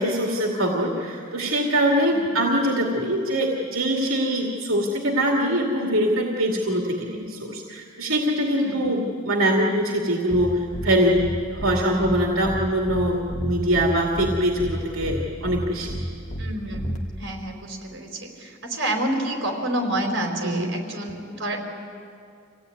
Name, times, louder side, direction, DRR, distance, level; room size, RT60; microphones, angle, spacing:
voice 1, 0.0-11.2 11.5-16.0 20.4-20.7, equal, 85° right, 0 dB, 2.4 m, -23 dB
voice 2, 2.1-2.5 7.0-7.3 8.6-8.9 16.4-16.9 17.2-21.6, right 1 dB, 60° right, 2 dB, 4.5 m, -29 dB
sound 1, 10.3-10.4 10.7-10.9 11.2-11.3 11.6-11.7 12.0-12.1 12.4-12.6 12.9-13.0 13.3-13.9 14.2-14.3 14.6-14.7 15.0-15.1 15.4-15.6 15.9-16.0 16.3-16.4 16.7-17.0, equal, 35° left, 1.9 m, -31 dB
26.0 x 17.0 x 9.6 m, 2.4 s
head